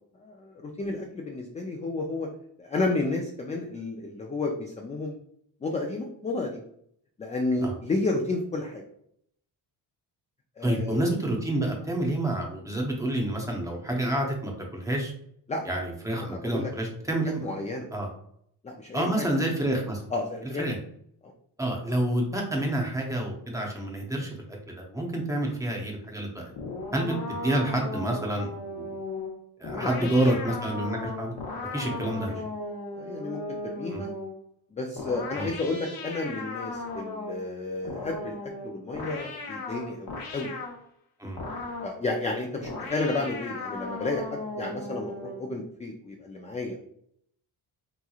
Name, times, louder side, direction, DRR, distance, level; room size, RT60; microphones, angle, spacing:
voice 1, 0.2-2.3 2.6-5.1 5.6-6.6 7.2-8.8 10.6-11.0 15.5-15.6 16.2-16.7 17.4-17.9 18.6-19.3 20.1-20.7 21.2-21.3 29.7-30.3 31.7-32.2 33.0-34.1 34.7-40.5 41.8-46.8, left 2 dB, 20° left, 1 dB, 0.3 m, -32 dB
voice 2, 10.6-15.1 15.6-17.4 17.9-18.1 18.9-20.0 20.6-20.8 21.6-26.5 26.9-28.9 29.6-31.3 31.7-32.4 33.9-34.0 35.3-35.5 41.2-41.6, right 1 dB, 10° right, 0 dB, 0.7 m, -28 dB
sound 1, 26.6-34.4 35.0-37.5 37.8-40.8 41.4-42.0 42.6-45.5, left 2 dB, 60° left, 0.8 m, -37 dB
3.6 x 3.0 x 2.3 m, 0.69 s
cardioid pair, 120°, 40 cm